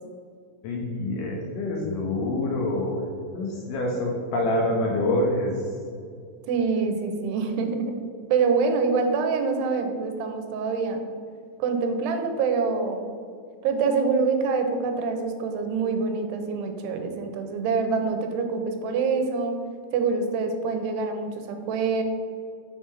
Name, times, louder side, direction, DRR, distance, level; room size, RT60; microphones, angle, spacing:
voice 1, 0.6-3.0 3.3-5.6, left 1 dB, 70° left, -1 dB, 2.1 m, -26 dB
voice 2, 6.5-11.0 11.6-13.1 13.6-19.6 19.9-22.0, right 4 dB, 85° right, 5 dB, 2.9 m, -25 dB
6.9 x 5.6 x 6.3 m, 2.3 s
omnidirectional pair, 4.7 m